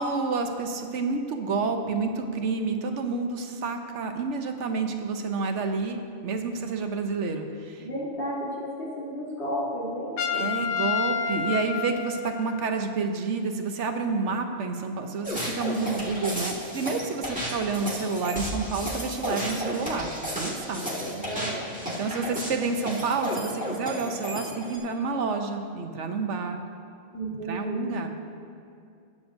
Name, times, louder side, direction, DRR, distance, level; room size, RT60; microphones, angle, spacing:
voice 1, 0.0-7.8 10.3-20.1 20.4-20.8 22.0-26.6 27.5-28.1, right 4 dB, 75° right, 5 dB, 1.1 m, -29 dB
voice 2, 7.8-10.5 20.8-21.8 27.1-27.8, equal, 65° left, -8 dB, 3.4 m, -33 dB
Trumpet, 10.2-12.8, left 7 dB, 90° left, 1.1 m, -29 dB
sound 1, 15.2-24.8, equal, 5° right, 1.8 m, -33 dB
20.0 x 8.6 x 2.6 m, 2.4 s
omnidirectional pair, 1.2 m